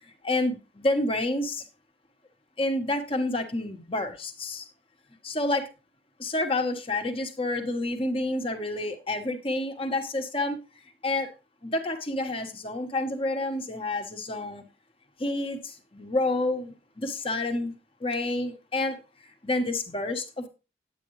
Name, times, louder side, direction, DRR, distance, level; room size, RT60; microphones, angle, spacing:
voice 1, 0.2-1.6 2.6-4.7 5.2-5.6 6.2-10.6 11.0-11.3 11.6-14.6 15.2-17.7 18.0-19.0 19.4-20.5, left 2 dB, 30° left, 1.4 m, -29 dB
10.0 x 9.0 x 3.2 m
head